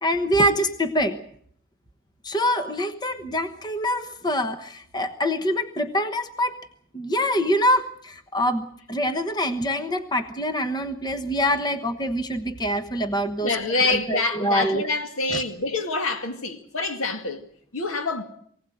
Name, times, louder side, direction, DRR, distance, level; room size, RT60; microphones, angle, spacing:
voice 1, 0.0-1.2 2.2-6.6 6.9-13.5 13.8-14.8 15.3-15.4, equal, 20° left, 1.1 m, -25 dB
voice 2, 13.4-17.4 17.7-18.2, left 3 dB, 85° left, 2.3 m, -26 dB
23.0 x 17.0 x 7.9 m
head